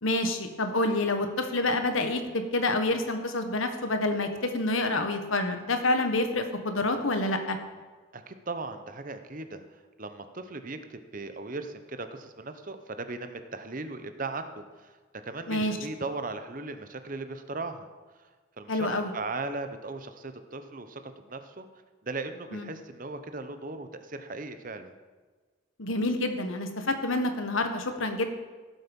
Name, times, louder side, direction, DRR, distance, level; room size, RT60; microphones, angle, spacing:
voice 1, 0.0-7.6 15.5-15.8 18.7-19.1 22.5-22.7 25.8-28.2, left 2 dB, 80° left, 6 dB, 1.5 m, -28 dB
voice 2, 8.1-9.6 10.0-14.9 15.2-17.9 18.6-21.7 22.0-24.9, right 3 dB, 40° right, 9 dB, 0.9 m, -38 dB
16.5 x 8.1 x 5.4 m, 1.4 s
head